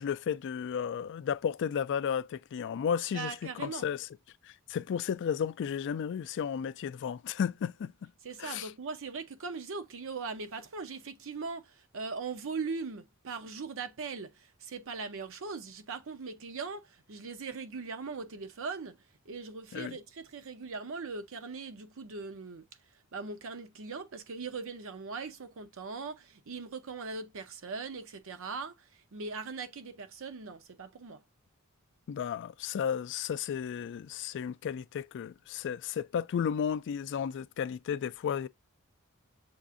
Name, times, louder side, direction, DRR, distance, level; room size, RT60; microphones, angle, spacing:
voice 1, 0.0-4.1 4.4-8.1 8.4-8.7 19.7-20.0 32.1-38.5, left 7 dB, 55° left, 0.3 m, -33 dB
voice 2, 3.1-3.9 8.2-22.7 22.9-31.2, right 4 dB, 65° right, 0.7 m, -40 dB
7.0 x 2.5 x 2.5 m
head